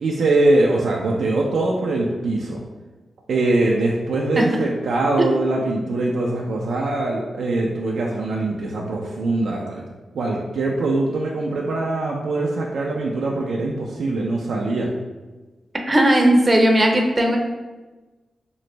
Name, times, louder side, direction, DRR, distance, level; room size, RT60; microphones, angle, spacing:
voice 1, 0.0-2.6 3.3-9.8 10.1-14.9, right 2 dB, 85° right, -2 dB, 0.3 m, -22 dB
voice 2, 15.9-17.4, right 1 dB, 35° right, 2 dB, 0.5 m, -16 dB
3.0 x 2.5 x 3.1 m, 1.2 s
cardioid pair, 60°, 0 cm